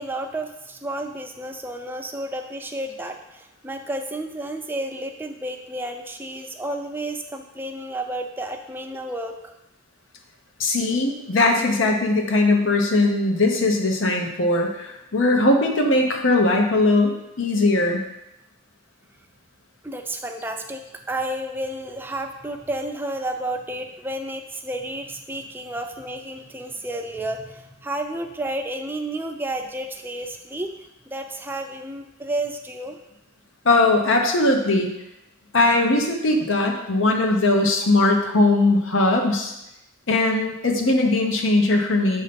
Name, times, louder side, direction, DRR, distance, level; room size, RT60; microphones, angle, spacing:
voice 1, 0.0-9.5 19.8-20.8 21.1-30.7 31.1-33.0, right 1 dB, 10° right, 4 dB, 0.4 m, -31 dB
voice 2, 10.6-18.0 33.6-34.9 35.5-39.5 40.1-42.2, left 2 dB, 75° left, 2 dB, 0.8 m, -20 dB
6.5 x 2.8 x 5.2 m, 0.91 s
head